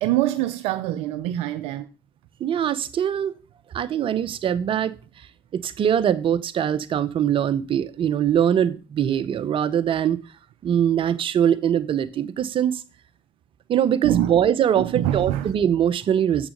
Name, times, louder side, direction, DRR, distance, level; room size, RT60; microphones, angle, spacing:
voice 1, 0.0-1.9 14.0-14.4 14.8-15.5, right 14 dB, 85° right, 0.5 m, -25 dB
voice 2, 2.4-3.4 3.7-5.3 5.5-10.2 10.6-12.8 13.7-16.5, right 9 dB, 60° right, 0.8 m, -22 dB
7.4 x 6.0 x 5.3 m
supercardioid pair, 55°, 10 cm